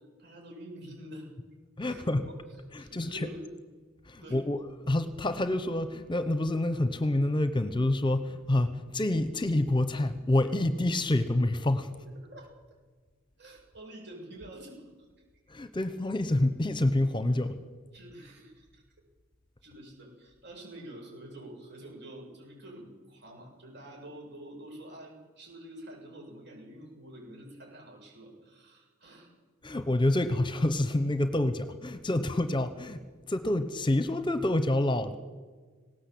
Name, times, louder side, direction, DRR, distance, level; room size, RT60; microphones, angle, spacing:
voice 1, 0.2-1.3 1.8-2.4 2.8-3.5 4.2-4.4 12.0-12.5 13.4-14.8 17.9-18.8 19.6-29.3 32.4-32.5, right 1 dB, 60° right, 0 dB, 8.0 m, -47 dB
voice 2, 1.8-2.2 2.7-3.3 4.1-11.9 15.5-17.6 29.6-33.0 33.3-35.2, left 1 dB, 25° left, 11 dB, 1.0 m, -27 dB
19.5 x 17.5 x 8.5 m, 1.4 s
head